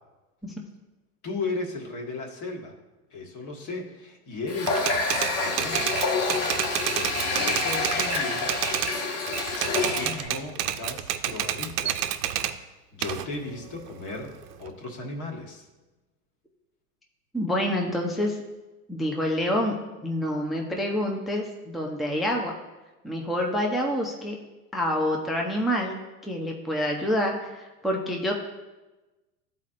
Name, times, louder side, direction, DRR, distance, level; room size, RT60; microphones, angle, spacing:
voice 1, 1.2-2.7 3.1-4.8 5.3-5.9 6.9-8.5 9.7-12.1 12.9-15.7, left 3 dB, 40° left, 2 dB, 1.4 m, -36 dB
Water tap faucet, 4.5-10.3, left 3 dB, 55° left, 1.5 m, -27 dB
Typewriter, 4.7-8.9 9.3-12.5 13.0-14.7, right 11 dB, 85° right, 0.6 m, -29 dB
voice 2, 17.3-18.4 18.9-19.7 20.0-22.5 23.0-24.4 24.7-28.3, equal, ahead, 0 dB, 0.5 m, -27 dB
11.5 x 4.3 x 2.5 m, 1.1 s
hypercardioid pair, 105°, 46 cm